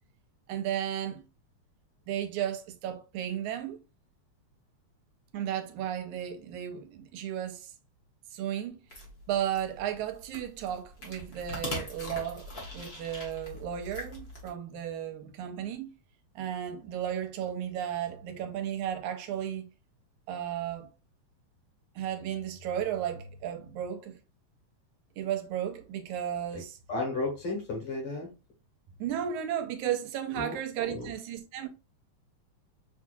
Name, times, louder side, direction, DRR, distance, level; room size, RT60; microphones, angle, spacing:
voice 1, 0.5-1.2 2.1-3.8 5.3-7.7 8.3-8.8 9.3-15.9 16.4-19.7 20.3-20.9 22.0-24.2 25.2-26.8 29.0-31.7, right 10 dB, 85° right, 2.1 m, -34 dB
sound 1, 8.9-14.5, left 2 dB, 70° left, 0.5 m, -42 dB
voice 2, 26.9-28.3 30.4-30.6 30.8-31.1, left 3 dB, 55° left, 2.0 m, -33 dB
6.4 x 2.7 x 2.3 m
omnidirectional pair, 3.4 m